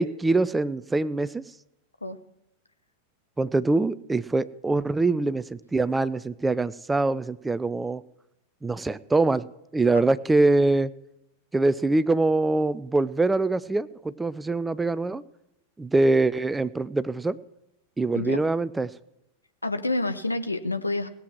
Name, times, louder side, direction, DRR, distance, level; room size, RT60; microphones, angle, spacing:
voice 1, 0.0-1.4 3.4-8.0 8.6-9.5 9.7-10.9 11.5-15.2 15.8-17.4 18.0-18.9, right 2 dB, 10° right, 16 dB, 0.5 m, -24 dB
voice 2, 19.6-21.1, left 2 dB, 85° left, 9 dB, 0.8 m, -28 dB
18.0 x 7.7 x 6.1 m, 0.85 s
figure-of-eight pair, 90°, 0 cm